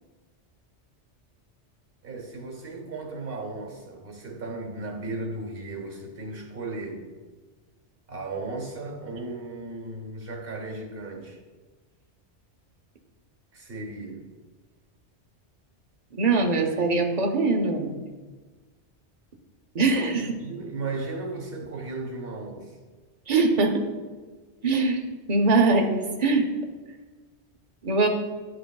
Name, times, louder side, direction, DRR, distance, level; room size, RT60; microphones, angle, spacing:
voice 1, 2.0-7.0 8.1-11.4 13.5-14.3 20.1-22.7, right 2 dB, 60° right, 1 dB, 1.4 m, -35 dB
voice 2, 16.2-18.0 19.7-20.3 23.3-23.9 24.6-25.0 25.3-26.5 27.8-28.1, right 3 dB, 40° right, 3 dB, 0.7 m, -22 dB
10.0 x 4.8 x 2.3 m, 1.3 s
omnidirectional pair, 1.1 m